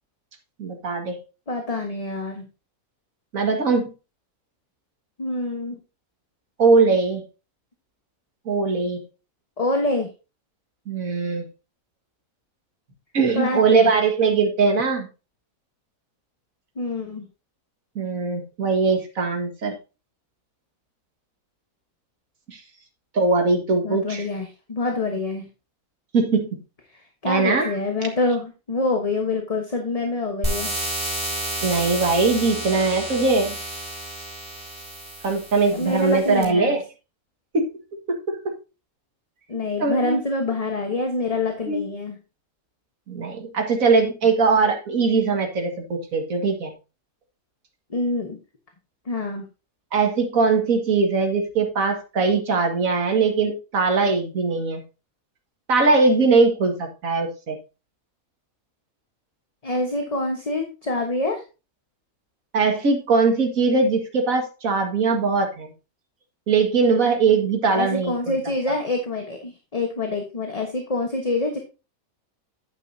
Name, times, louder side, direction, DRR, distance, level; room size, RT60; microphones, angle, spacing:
voice 1, 0.6-1.2 3.3-3.9 6.6-7.2 8.5-9.0 10.9-11.4 13.1-15.1 18.0-19.7 22.5-22.6 23.1-24.2 26.1-26.5 27.2-27.7 31.6-33.6 35.2-36.8 37.5-37.7 38.1-38.4 39.8-40.2 41.7-41.8 43.1-46.7 49.9-54.8 55.7-57.6 62.5-65.7 66.5-68.4, right 4 dB, 70° right, 4 dB, 2.2 m, -21 dB
voice 2, 1.5-2.5 5.2-5.8 9.6-10.1 13.3-13.9 16.8-17.3 23.8-25.5 27.2-30.7 35.7-36.8 39.5-42.2 47.9-48.4 49.0-49.4 59.6-61.4 67.7-71.6, left 2 dB, 25° left, 4 dB, 1.2 m, -26 dB
sound 1, 30.4-36.4, right 1 dB, 40° right, 4.6 m, -31 dB
9.7 x 9.1 x 2.7 m, 0.30 s
omnidirectional pair, 1.5 m